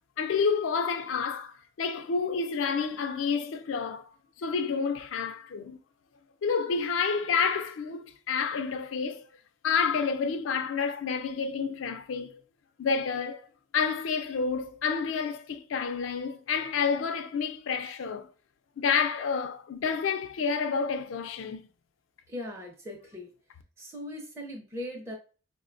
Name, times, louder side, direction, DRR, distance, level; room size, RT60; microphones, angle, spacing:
voice 1, 0.2-4.1 4.4-5.8 6.4-9.2 9.6-12.4 12.8-13.5 13.7-18.3 18.8-21.7, left 5 dB, 90° left, 0.4 m, -29 dB
voice 2, 22.3-23.3 23.8-25.2, left 1 dB, 15° right, 0.5 m, -39 dB
4.9 x 2.1 x 2.5 m
head